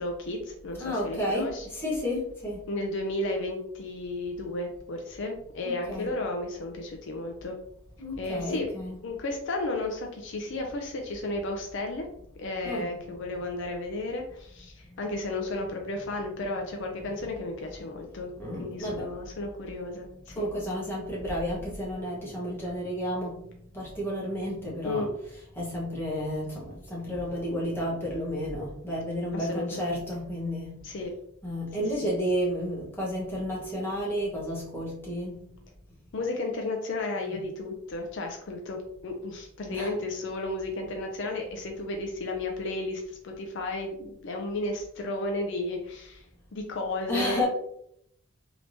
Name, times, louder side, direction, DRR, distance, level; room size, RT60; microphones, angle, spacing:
voice 1, 0.0-1.7 2.7-7.6 8.2-8.7 9.0-12.1 12.4-18.3 18.6-20.5 24.8-25.1 29.3-30.0 30.8-31.1 32.0-32.1 36.1-46.2 46.5-47.5, left 2 dB, 55° left, 2 dB, 0.4 m, -33 dB
voice 2, 0.8-2.7 5.6-6.2 8.0-9.1 12.6-13.0 13.3-13.4 15.9-16.0 16.4-16.5 16.8-17.3 17.9-18.0 18.4-19.2 20.3-23.4 23.7-30.8 31.4-35.5 37.1-37.4 39.7-39.9 47.1-47.5, equal, 10° left, -5 dB, 1.0 m, -32 dB
3.3 x 2.9 x 2.6 m, 0.73 s
head